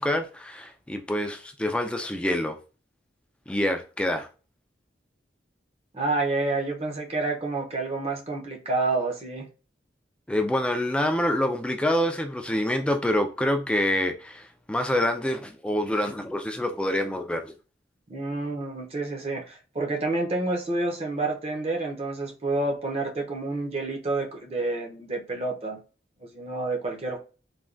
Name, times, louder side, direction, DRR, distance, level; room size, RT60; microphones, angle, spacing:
voice 1, 0.0-2.6 3.5-4.3 10.3-17.5, left 1 dB, 5° left, 0.3 m, -26 dB
voice 2, 5.9-9.5 18.1-25.8 26.2-27.2, right 2 dB, 35° right, 0.6 m, -29 dB
3.3 x 2.2 x 2.4 m
head